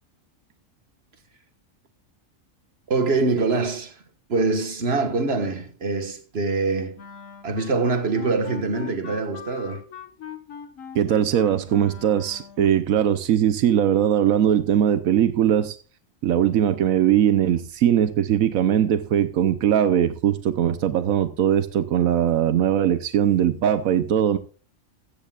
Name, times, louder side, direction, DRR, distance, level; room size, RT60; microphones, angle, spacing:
voice 1, 2.9-4.0 4.3-7.0 7.4-9.8, right 3 dB, 50° right, 1.8 m, -24 dB
Wind instrument woodwind instrument, 7.0-12.7, left 7 dB, 75° left, 1.6 m, -41 dB
voice 2, 10.9-15.8 16.2-24.4, right 10 dB, 85° right, 1.2 m, -20 dB
15.5 x 14.0 x 2.4 m
omnidirectional pair, 1.4 m